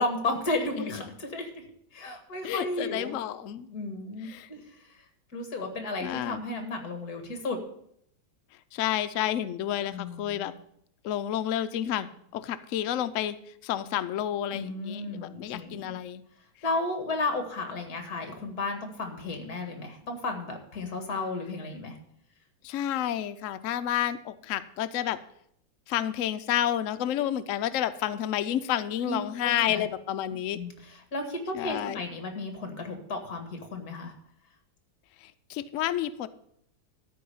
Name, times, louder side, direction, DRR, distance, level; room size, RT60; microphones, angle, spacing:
voice 1, 0.0-1.6 1.9-3.1 3.6-4.6 5.3-7.6 9.9-10.5 14.5-16.0 16.6-22.0 29.1-29.9 30.5-34.1, left 2 dB, 50° left, 5 dB, 2.4 m, -33 dB
voice 2, 0.8-1.1 2.4-3.7 4.2-4.5 6.0-6.4 8.7-10.5 11.0-13.4 13.6-16.2 22.6-25.2 25.9-30.6 31.5-32.0 35.2-36.3, left 11 dB, 85° left, 11 dB, 0.7 m, -30 dB
13.0 x 4.8 x 8.4 m, 0.70 s
omnidirectional pair, 2.1 m